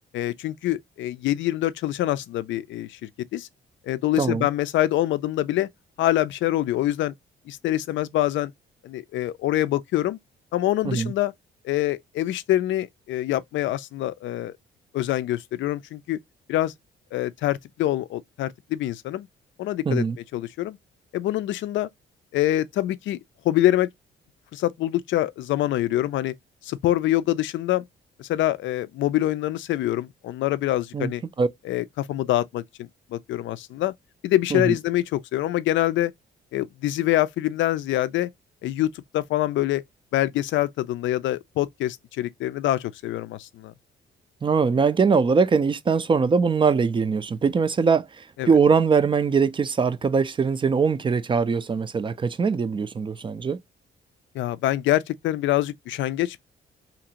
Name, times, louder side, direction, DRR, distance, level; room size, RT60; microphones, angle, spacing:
voice 1, 0.1-3.5 3.8-5.7 6.0-7.1 7.5-8.5 8.8-10.2 10.5-11.3 11.6-14.5 14.9-16.2 16.5-16.7 17.1-19.3 19.6-20.0 20.3-20.8 21.1-21.9 22.3-23.2 23.4-23.9 24.5-26.3 26.6-27.8 28.2-31.2 31.6-33.9 34.2-36.1 36.5-38.3 38.6-39.8 40.1-43.7 48.4-48.5 54.3-56.4, left 14 dB, 70° left, 0.4 m, -25 dB
voice 2, 4.2-4.5 10.8-11.1 19.9-20.2 30.9-31.1 31.4-31.5 34.5-34.7 44.4-53.6, right 5 dB, 25° right, 0.4 m, -22 dB
2.8 x 2.5 x 2.8 m
cardioid pair, 90°, 20 cm